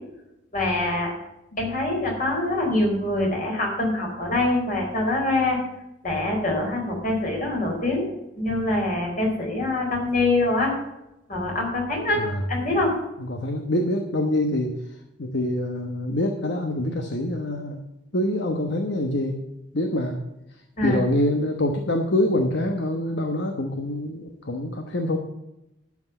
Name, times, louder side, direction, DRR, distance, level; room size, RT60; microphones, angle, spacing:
voice 1, 0.5-1.1 1.6-5.6 6.0-8.1 8.4-10.7 11.3-12.9 20.8-21.0, left 2 dB, 45° left, 0 dB, 4.4 m, -24 dB
voice 2, 13.2-17.8 18.1-19.4 19.7-20.2 20.8-25.2, left 1 dB, 60° left, 4 dB, 1.1 m, -25 dB
12.0 x 6.1 x 8.0 m, 0.89 s
head